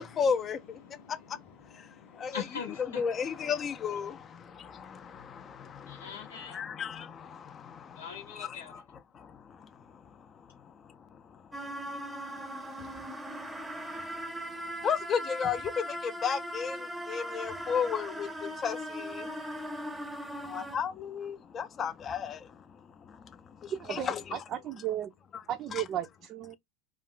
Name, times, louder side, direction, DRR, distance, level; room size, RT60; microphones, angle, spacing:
voice 1, 0.0-0.8 2.1-2.4 2.9-8.8 9.1-9.3 14.8-19.3 20.4-22.4 23.6-24.4 25.7-25.8, left 6 dB, 35° left, 0.4 m, -34 dB
voice 2, 0.8-3.2 4.8-5.0 5.3-6.6 7.9-8.8, left 7 dB, 85° left, 0.8 m, -44 dB
sound 1, 11.5-20.8, equal, 10° right, 0.7 m, -39 dB
voice 3, 23.7-25.1 25.5-26.6, right 11 dB, 45° right, 0.4 m, -35 dB
2.4 x 2.2 x 3.6 m
hypercardioid pair, 90°, 0 cm